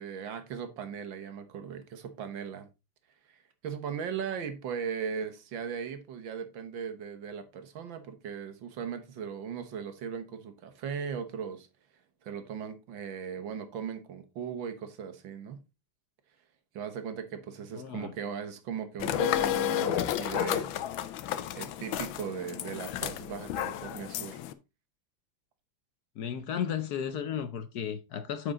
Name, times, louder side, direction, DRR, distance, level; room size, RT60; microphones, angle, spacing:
voice 1, 0.0-2.7 3.3-11.7 12.2-15.6 16.7-20.8 21.5-24.4, right 7 dB, 75° right, 1.9 m, -38 dB
voice 2, 17.7-18.1 26.2-28.5, left 8 dB, 65° left, 1.1 m, -34 dB
sound 1, 19.0-24.5, left 11 dB, 90° left, 1.5 m, -32 dB
9.2 x 5.1 x 3.7 m
omnidirectional pair, 2.1 m